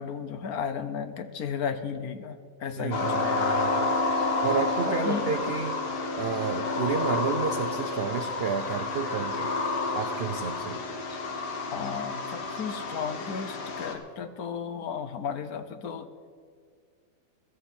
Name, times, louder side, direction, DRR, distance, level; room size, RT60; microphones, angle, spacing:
voice 1, 0.0-3.6 4.9-5.4 11.7-16.1, left 6 dB, 70° left, 10 dB, 1.3 m, -34 dB
voice 2, 2.8-3.9 4.4-5.8 6.2-9.5 9.9-10.8, right 6 dB, 65° right, 8 dB, 0.6 m, -31 dB
sound 1, 2.9-13.9, left 3 dB, 85° left, 1.9 m, -30 dB
16.0 x 13.5 x 4.4 m, 2.1 s
omnidirectional pair, 1.7 m